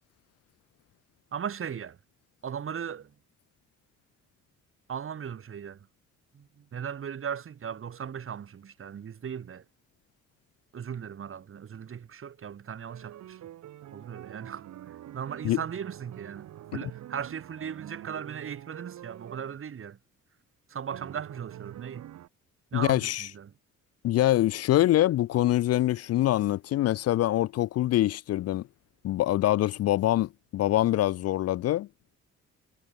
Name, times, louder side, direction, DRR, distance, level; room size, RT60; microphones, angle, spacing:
voice 1, 1.3-2.0 2.4-3.1 4.9-5.8 6.3-9.6 10.7-13.4 13.9-14.7 15.1-16.4 16.7-20.0 20.7-22.1 22.7-23.5, right 8 dB, 45° right, 1.6 m, -37 dB
sound 1, 12.9-19.6 20.9-22.3, right 12 dB, 65° right, 1.2 m, -45 dB
voice 2, 22.7-23.3 24.0-28.7 29.0-31.9, left 14 dB, 55° left, 0.4 m, -24 dB
cardioid pair, 90°, 30 cm